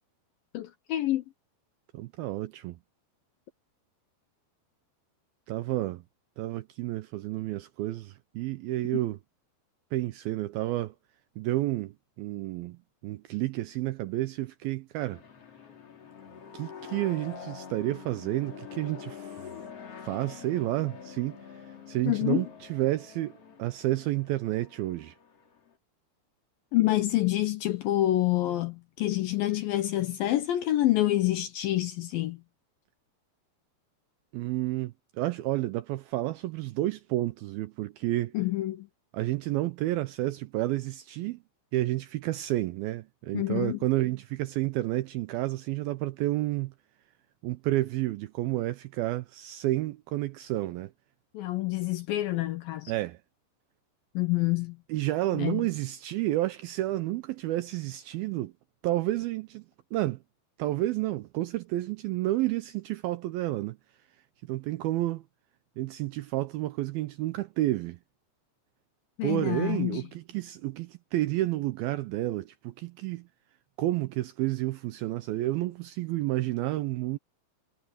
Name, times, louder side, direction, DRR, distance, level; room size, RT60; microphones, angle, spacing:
voice 1, 0.5-1.2 22.1-22.5 26.7-32.4 38.3-38.9 43.3-43.8 51.3-52.9 54.1-54.8 55.3-55.7 69.2-70.1, left 15 dB, 75° left, 2.2 m, -27 dB
voice 2, 1.9-2.8 5.5-6.0 6.4-9.2 9.9-11.0 11.4-15.2 16.5-19.5 20.0-23.3 23.6-25.1 34.3-38.3 39.1-41.4 41.7-46.7 47.4-50.9 52.9-53.2 54.9-58.5 58.8-59.7 59.9-60.2 60.6-63.8 64.5-65.2 65.8-68.0 69.2-73.3 73.8-77.2, right 16 dB, 80° right, 2.2 m, -30 dB
sound 1, 15.0-25.7, left 7 dB, 40° left, 3.3 m, -46 dB
omnidirectional pair, 5.0 m